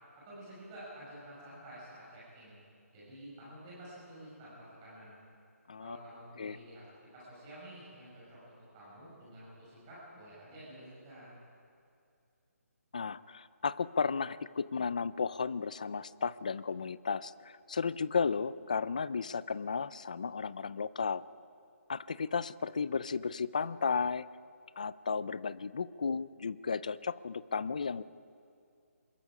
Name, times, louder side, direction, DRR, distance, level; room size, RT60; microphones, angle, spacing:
voice 1, 0.2-2.6 2.9-5.2 5.8-6.8 7.1-11.4, right 1 dB, 15° right, -8 dB, 5.8 m, -50 dB
voice 2, 12.9-21.2 21.9-24.3 24.8-28.0, left 5 dB, 30° left, 17 dB, 0.4 m, -34 dB
27.0 x 21.5 x 4.9 m, 2.5 s
hypercardioid pair, 180°, 8 cm